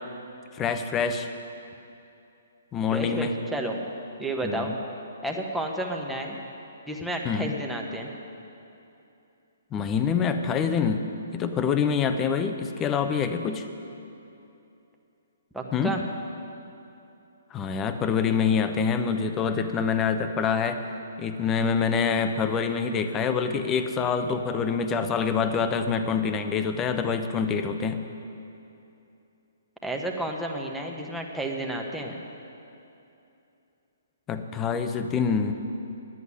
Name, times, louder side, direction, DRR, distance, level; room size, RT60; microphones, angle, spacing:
voice 1, 0.5-1.3 2.7-3.3 4.4-4.8 7.2-7.5 9.7-11.1 11.3-13.7 15.7-16.0 17.5-20.8 21.2-28.0 34.3-35.5, left 6 dB, 20° left, 8 dB, 0.8 m, -26 dB
voice 2, 2.9-3.8 4.2-4.7 5.2-6.4 6.9-8.1 15.5-16.0 29.8-32.2, right 1 dB, ahead, 0 dB, 1.2 m, -31 dB
11.0 x 8.2 x 9.8 m, 2.8 s
hypercardioid pair, 135°, 0 cm